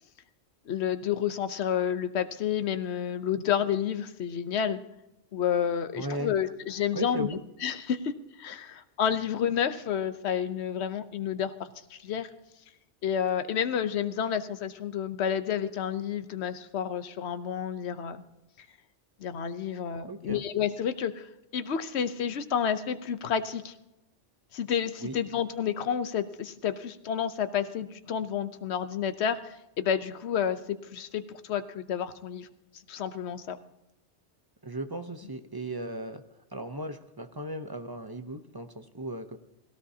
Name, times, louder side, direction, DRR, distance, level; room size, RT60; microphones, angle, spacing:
voice 1, 0.7-4.8 5.3-8.1 8.4-12.3 13.0-18.2 18.6-18.7 19.2-23.7 24.5-32.5 32.9-33.6, left 8 dB, 70° left, 11 dB, 1.1 m, -30 dB
voice 2, 5.9-6.3 6.9-7.4 20.0-20.4 25.0-25.2 34.6-36.2 36.5-39.4, right 1 dB, 25° right, 7 dB, 0.7 m, -36 dB
18.5 x 17.0 x 2.8 m, 0.91 s
omnidirectional pair, 1.2 m